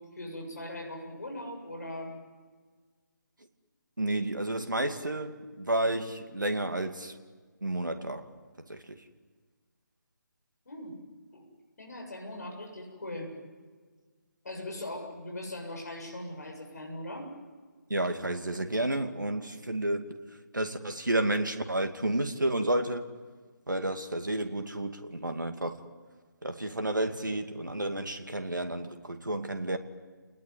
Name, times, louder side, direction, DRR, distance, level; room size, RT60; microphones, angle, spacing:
voice 1, 0.1-2.2 10.7-11.0 11.3-11.5 11.8-13.3 14.4-17.3, left 1 dB, 55° left, 1 dB, 7.5 m, -40 dB
voice 2, 4.0-7.2 7.6-8.3 8.7-9.0 17.9-20.1 20.5-23.0 23.7-25.8 26.4-29.8, right 1 dB, 75° right, 7 dB, 2.3 m, -31 dB
29.0 x 20.0 x 9.7 m, 1.5 s
figure-of-eight pair, 150°, 10 cm